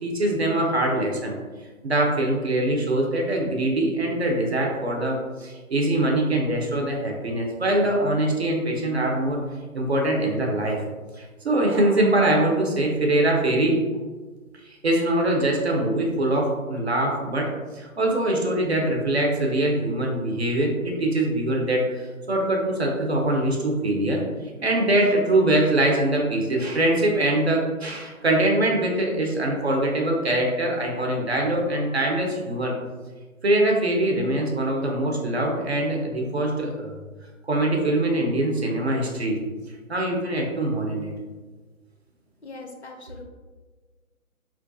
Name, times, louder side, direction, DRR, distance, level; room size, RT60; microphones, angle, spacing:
voice 1, 0.0-10.8 11.1-13.8 14.5-32.8 33.4-37.0 37.4-39.4 39.7-41.1, right 1 dB, 45° right, 0 dB, 0.6 m, -23 dB
voice 2, 42.4-43.2, left 3 dB, 50° left, 2 dB, 0.5 m, -41 dB
4.4 x 2.3 x 2.5 m, 1.4 s
hypercardioid pair, 170°, 43 cm